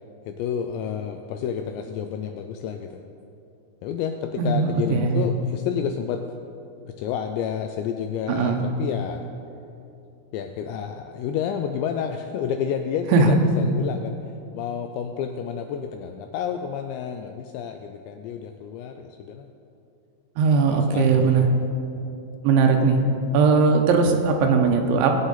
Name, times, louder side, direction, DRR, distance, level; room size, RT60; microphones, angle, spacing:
voice 1, 0.3-3.0 3.8-6.2 7.0-9.2 10.3-14.2 14.5-19.5 20.7-21.7, left 8 dB, 85° left, 6 dB, 2.6 m, -30 dB
voice 2, 4.4-5.3 8.3-8.7 13.1-13.4 20.4-21.5 22.4-23.0 23.3-25.2, right 4 dB, 80° right, 3 dB, 3.1 m, -19 dB
19.0 x 8.0 x 4.0 m, 2.7 s
omnidirectional pair, 5.6 m